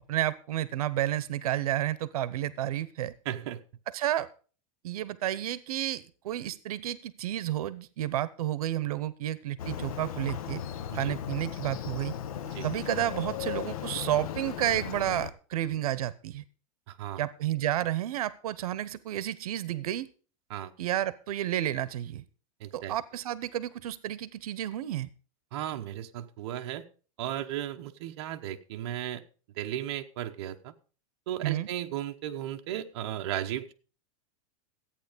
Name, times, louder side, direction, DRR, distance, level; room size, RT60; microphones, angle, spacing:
voice 1, 0.1-3.1 3.9-4.3 4.8-10.6 10.9-12.1 12.6-16.4 17.2-20.1 20.8-22.2 22.7-25.1 31.4-31.7, right 13 dB, 90° right, 18 dB, 0.8 m, -31 dB
voice 2, 3.2-3.6 10.9-11.1 12.4-12.7 16.9-17.2 20.5-20.7 22.6-22.9 25.5-26.8 27.2-29.2 29.6-30.7 31.3-33.7, right 12 dB, 50° right, 5 dB, 1.0 m, -35 dB
Motorcycle, 9.6-15.3, left 9 dB, 75° left, 1.0 m, -36 dB
13.5 x 8.9 x 5.1 m, 0.38 s
supercardioid pair, 180°, 18 cm